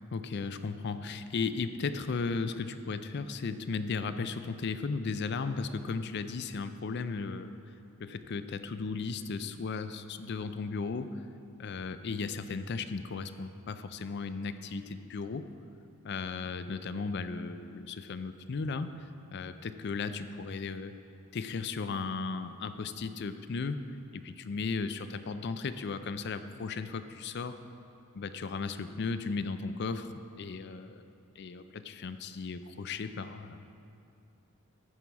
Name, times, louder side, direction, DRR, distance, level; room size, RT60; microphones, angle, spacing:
voice 1, 0.1-7.5 8.0-11.2 11.6-15.5 16.0-19.0 19.3-20.9 21.3-23.8 24.1-27.6 28.1-30.1 30.4-31.0 31.4-33.6, left 4 dB, 50° left, 11 dB, 0.4 m, -35 dB
15.0 x 5.5 x 4.7 m, 2.7 s
head